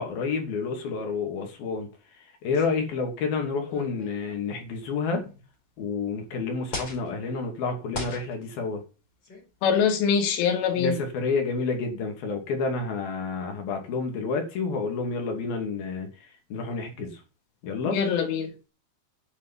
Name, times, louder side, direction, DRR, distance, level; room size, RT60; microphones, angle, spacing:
voice 1, 0.0-1.9 2.4-5.2 5.8-8.8 10.8-16.1 16.5-17.2 17.6-18.0, left 4 dB, 55° left, 4.1 m, -29 dB
sound 1, 3.7-4.6 5.5-5.6 6.7-7.1 7.9-8.4 9.2-9.5, left 3 dB, 25° left, 4.5 m, -37 dB
voice 2, 9.6-11.0 17.9-18.7, left 7 dB, 85° left, 4.5 m, -24 dB
11.0 x 6.8 x 7.3 m
omnidirectional pair, 5.6 m